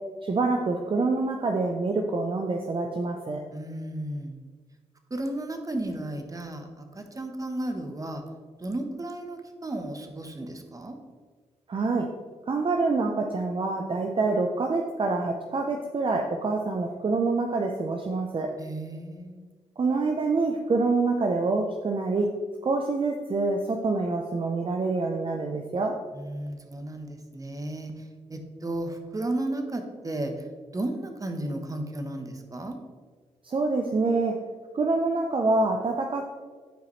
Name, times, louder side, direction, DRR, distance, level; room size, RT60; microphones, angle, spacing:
voice 1, 0.2-3.4 11.7-12.1 12.5-18.5 19.8-22.3 22.6-26.0 33.4-34.3 34.7-36.3, right 3 dB, 45° right, 2 dB, 0.6 m, -26 dB
voice 2, 3.5-4.4 5.1-8.2 8.6-11.0 18.6-19.5 26.1-27.9 28.3-30.3 30.7-32.8, right 1 dB, 30° right, 5 dB, 1.1 m, -34 dB
10.0 x 4.8 x 3.2 m, 1.5 s
cardioid pair, 60°, 12 cm